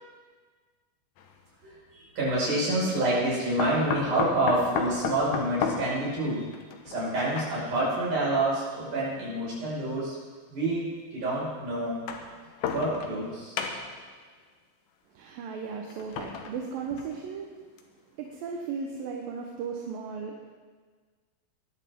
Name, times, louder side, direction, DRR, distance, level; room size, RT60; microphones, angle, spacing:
sound 1, 1.2-1.3 3.6-7.9 8.8-8.9 10.1-10.2 11.8-13.3 13.6-14.1 15.9-17.3 17.8-17.9 18.3-18.4, left 6 dB, 65° left, 2.0 m, -33 dB
voice 1, 1.6-6.5 6.9-10.2 10.5-12.0 12.7-13.5, right 2 dB, 55° right, -7 dB, 6.8 m, -28 dB
voice 2, 15.1-17.5 18.2-20.4, right 5 dB, 75° right, 1 dB, 2.7 m, -36 dB
20.0 x 11.5 x 3.6 m, 1.5 s
omnidirectional pair, 4.2 m